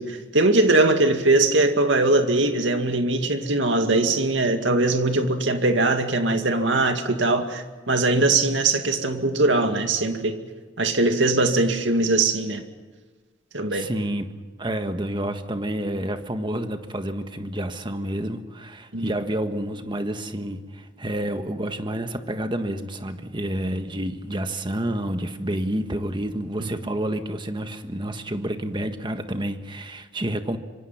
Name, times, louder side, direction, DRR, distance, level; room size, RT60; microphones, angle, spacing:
voice 1, 0.0-10.4 10.8-12.6 13.5-13.9 18.9-19.1 26.6-26.8, right 2 dB, 75° right, 6 dB, 2.3 m, -21 dB
voice 2, 13.7-14.3 14.6-30.6, right 1 dB, 25° right, 7 dB, 1.6 m, -29 dB
26.0 x 25.5 x 6.0 m, 1.4 s
head